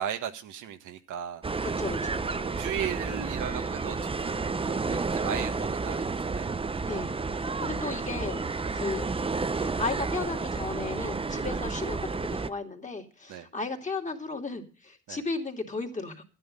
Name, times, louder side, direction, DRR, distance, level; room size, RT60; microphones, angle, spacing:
voice 1, 0.0-1.4 2.2-7.1 7.6-8.0 8.6-8.8 11.5-11.6 13.3-13.5 15.1-15.2, right 9 dB, 85° right, 7 dB, 1.5 m, -37 dB
sound 1, 1.4-12.5, right 4 dB, 20° right, 0.7 m, -31 dB
voice 2, 1.6-2.6 6.9-7.2 7.6-8.4 8.7-9.1 9.5-12.1 12.5-16.2, left 3 dB, 25° left, 4 dB, 2.8 m, -35 dB
12.5 x 10.0 x 5.5 m, 0.37 s
cardioid pair, 90°, 30 cm